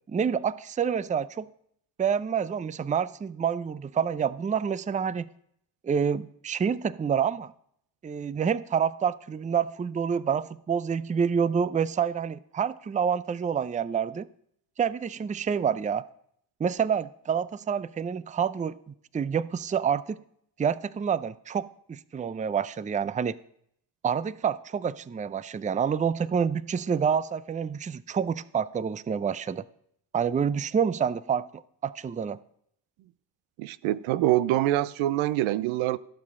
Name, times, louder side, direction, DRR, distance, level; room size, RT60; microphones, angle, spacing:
voice 1, 0.1-1.5 2.0-5.3 5.8-7.5 8.0-14.3 14.8-16.1 16.6-20.2 20.6-23.4 24.0-29.6 30.1-32.4, right 7 dB, 15° right, 0.4 m, -28 dB
voice 2, 33.6-36.0, right 14 dB, 75° right, 0.6 m, -25 dB
16.5 x 7.5 x 3.7 m
hypercardioid pair, 50°, 48 cm